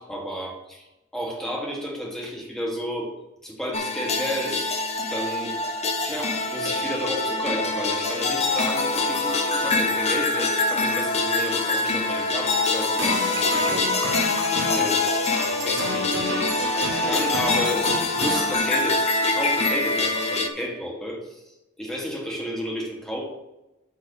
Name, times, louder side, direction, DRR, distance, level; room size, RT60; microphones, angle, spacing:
voice 1, 0.0-3.1 3.4-4.7 5.1-5.5 6.0-14.3 14.5-16.5 17.0-21.4 21.8-23.2, equal, ahead, -1 dB, 1.5 m, -32 dB
sound 1, 3.7-20.5, left 3 dB, 30° left, 0.7 m, -24 dB
sound 2, 13.0-18.5, right 2 dB, 55° right, 0.9 m, -31 dB
6.8 x 4.6 x 6.5 m, 0.96 s
head